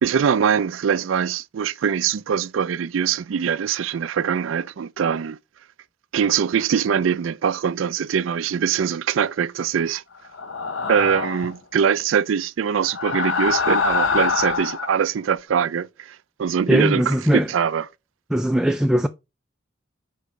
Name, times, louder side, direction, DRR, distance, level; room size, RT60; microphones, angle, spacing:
voice 1, 0.0-5.4 6.1-10.0 10.9-17.9, right 7 dB, 85° right, 0.4 m, -22 dB
sound 1, 10.3-11.5 12.8-15.0, left 5 dB, 75° left, 1.0 m, -24 dB
voice 2, 16.7-17.5 18.3-19.1, equal, 5° right, 0.3 m, -19 dB
6.8 x 4.7 x 5.0 m
head